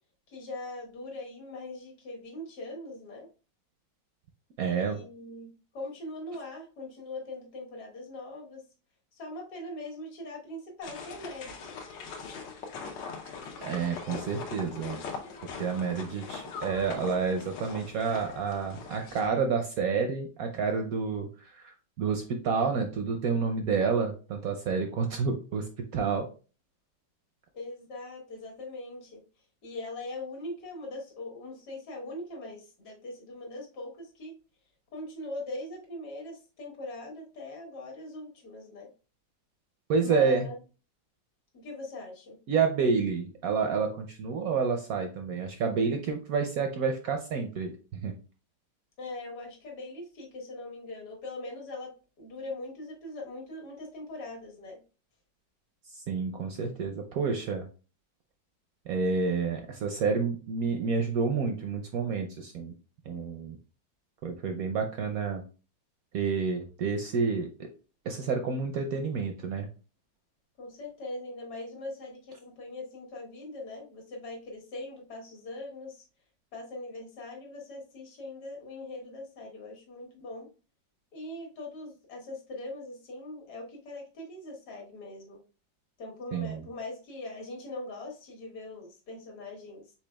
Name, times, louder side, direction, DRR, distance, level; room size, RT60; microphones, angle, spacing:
voice 1, 0.3-3.3 4.6-8.6 9.1-11.9 27.5-29.2 29.6-34.3 34.9-38.9 40.0-40.6 41.5-42.4 49.0-51.9 52.2-54.8 70.6-76.0 76.5-80.5 81.1-85.4 86.0-89.9, left 2 dB, 60° left, 0 dB, 1.7 m, -41 dB
voice 2, 4.6-5.0 13.6-15.0 15.6-26.3 39.9-40.5 42.5-47.7 48.0-48.2 55.9-57.6 58.9-62.7 63.1-63.6 64.2-65.4 66.1-67.7 68.1-69.7 86.3-86.6, right 5 dB, 70° right, 4 dB, 0.9 m, -29 dB
sound 1, 10.8-19.3, left 5 dB, 80° left, 1.5 m, -41 dB
6.0 x 4.0 x 2.2 m, 0.35 s
omnidirectional pair, 2.0 m